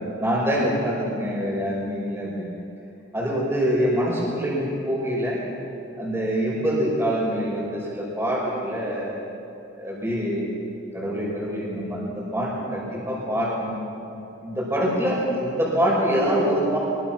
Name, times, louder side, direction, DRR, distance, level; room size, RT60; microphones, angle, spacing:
voice 1, 0.0-2.5 3.1-5.4 6.0-9.2 9.7-10.5 10.9-13.8 14.4-16.8, equal, 15° right, -4 dB, 5.9 m, -25 dB
24.0 x 23.0 x 6.0 m, 2.7 s
head